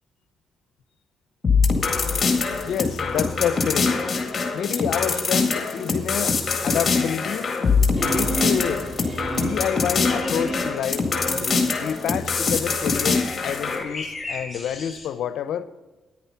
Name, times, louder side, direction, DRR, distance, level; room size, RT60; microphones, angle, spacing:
sound 1, 1.4-13.8, left 4 dB, 35° left, 1.9 m, -23 dB
voice 1, 2.7-4.0 4.5-7.5 8.0-8.9 9.3-11.1 11.8-15.7, left 9 dB, 75° left, 0.7 m, -28 dB
sound 2, 8.0-11.7, right 2 dB, 20° right, 2.7 m, -32 dB
sound 3, 10.0-15.1, left 3 dB, 15° left, 3.2 m, -38 dB
10.5 x 9.8 x 5.6 m
cardioid pair, 90°, 0 cm